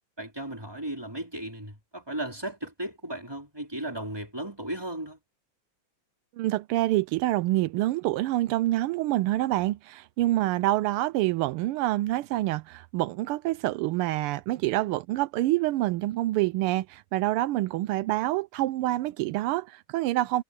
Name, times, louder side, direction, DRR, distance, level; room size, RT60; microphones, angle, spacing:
voice 1, 0.2-5.2, right 1 dB, 10° right, 4.6 m, -35 dB
voice 2, 6.4-20.4, right 16 dB, 85° right, 1.5 m, -27 dB
omnidirectional pair, 2.4 m